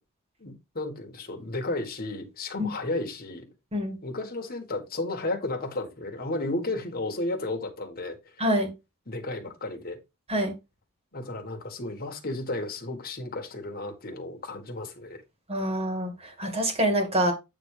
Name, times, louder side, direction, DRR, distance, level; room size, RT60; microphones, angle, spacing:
voice 1, 0.4-3.5 4.0-8.2 9.1-10.0 11.1-15.2, left 2 dB, 45° left, 1.8 m, -33 dB
voice 2, 8.4-8.7 10.3-10.5 15.5-16.1 16.4-17.3, equal, 30° right, 2.1 m, -25 dB
8.6 x 3.5 x 5.0 m
head